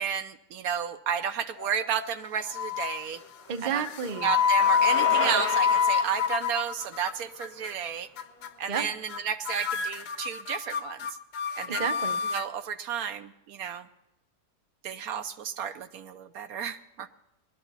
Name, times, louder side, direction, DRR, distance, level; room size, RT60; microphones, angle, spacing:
voice 1, 0.0-3.2 3.6-3.8 4.2-8.1 8.6-11.1 11.6-11.9 12.3-13.9 14.8-17.1, right 8 dB, 75° right, 9 dB, 1.1 m, -32 dB
sound 1, 1.6-2.2 2.5-3.0 3.8-7.1 7.4-7.8 8.2-8.5 8.7-8.8 9.1-9.2 9.5-12.5, left 7 dB, 90° left, 1.3 m, -27 dB
Bicycle, 2.6-8.6, left 1 dB, 10° left, 0.9 m, -37 dB
voice 2, 3.5-4.4 8.7-8.9 11.7-12.2, right 7 dB, 40° right, 8 dB, 0.7 m, -31 dB
20.0 x 12.0 x 4.0 m, 0.89 s
omnidirectional pair, 1.6 m